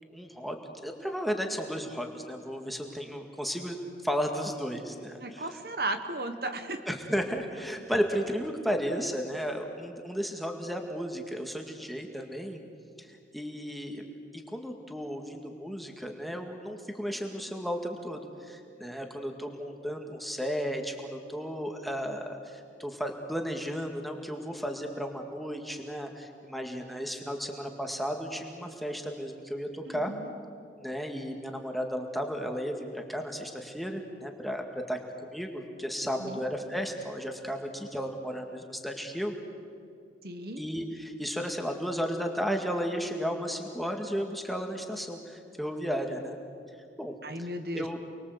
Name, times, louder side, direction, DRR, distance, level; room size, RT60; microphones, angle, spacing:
voice 1, 0.1-3.8 4.0-5.4 6.9-12.6 13.0-13.1 13.3-14.0 14.3-30.1 30.8-39.4 40.6-46.4 47.0-47.1 47.7-48.0, equal, ahead, 3 dB, 2.0 m, -34 dB
voice 2, 5.2-6.8 29.9-30.3 36.2-36.4 40.2-40.6 47.2-47.9, right 2 dB, 55° right, 7 dB, 1.5 m, -35 dB
29.5 x 21.5 x 8.1 m, 2.5 s
head